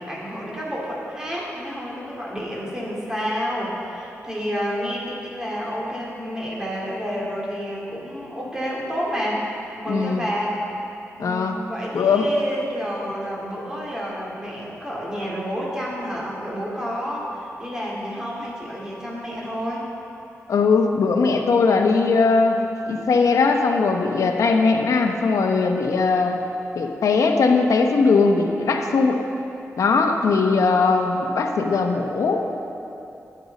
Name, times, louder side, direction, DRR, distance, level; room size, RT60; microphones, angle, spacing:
voice 1, 0.0-9.5 9.8-10.6 11.2-19.9, equal, 10° right, -5 dB, 2.5 m, -29 dB
voice 2, 9.9-10.2 11.2-11.6 11.9-12.3 20.5-26.4 26.7-29.2 29.8-32.4, left 4 dB, 80° left, 3 dB, 0.9 m, -19 dB
12.0 x 8.7 x 4.1 m, 2.8 s
wide cardioid pair, 100°, 5 cm